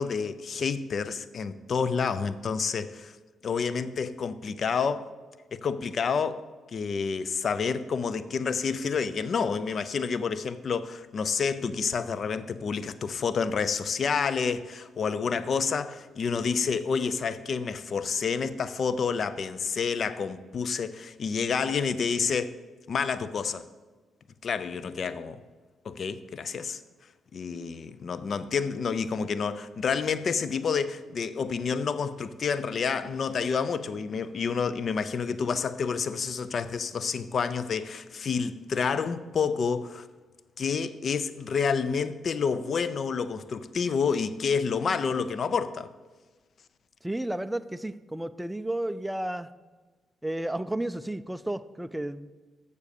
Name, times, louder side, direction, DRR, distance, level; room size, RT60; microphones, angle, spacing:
voice 1, 0.0-3.1 3.4-5.1 5.5-6.4 6.7-22.5 22.9-23.6 24.4-25.4 25.8-26.8 27.3-40.1 40.6-45.9, left 5 dB, 55° left, 0.5 m, -29 dB
voice 2, 47.0-49.5 50.2-52.3, right 1 dB, 5° right, 0.4 m, -32 dB
7.2 x 6.6 x 6.8 m
cardioid pair, 80°, 0 cm